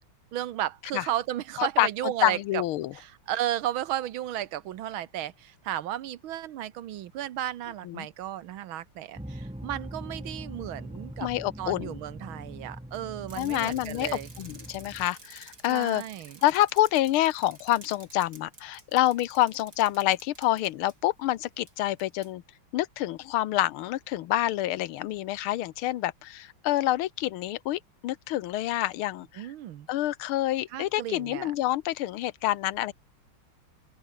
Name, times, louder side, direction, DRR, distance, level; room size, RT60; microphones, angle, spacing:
voice 1, 0.3-2.6 2.9-11.3 11.6-14.3 15.7-16.4 29.4-29.9 30.7-31.5, right 12 dB, 75° right, 1.8 m, -34 dB
voice 2, 1.6-2.9 7.8-8.1 11.2-12.0 13.4-14.1 14.4-16.0 16.4-22.4 22.7-29.5 29.9-32.9, left 14 dB, 90° left, 1.7 m, -27 dB
sound 1, 9.2-15.1, equal, 5° right, 1.4 m, -42 dB
Bicycle, 13.3-20.9 21.7-21.8 22.0-22.3, right 3 dB, 50° right, 4.8 m, -51 dB
open air
omnidirectional pair, 2.3 m